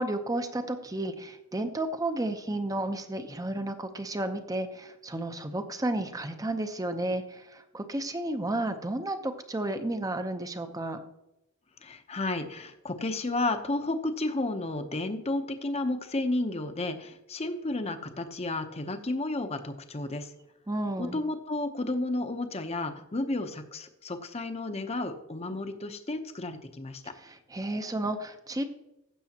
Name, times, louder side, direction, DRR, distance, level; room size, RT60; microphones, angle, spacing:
voice 1, 0.0-11.0 20.7-21.2 27.2-28.6, right 1 dB, 15° right, 8 dB, 0.7 m, -32 dB
voice 2, 11.8-20.3 21.0-27.0, left 2 dB, 30° left, 7 dB, 0.8 m, -32 dB
15.5 x 6.9 x 2.9 m, 0.90 s
head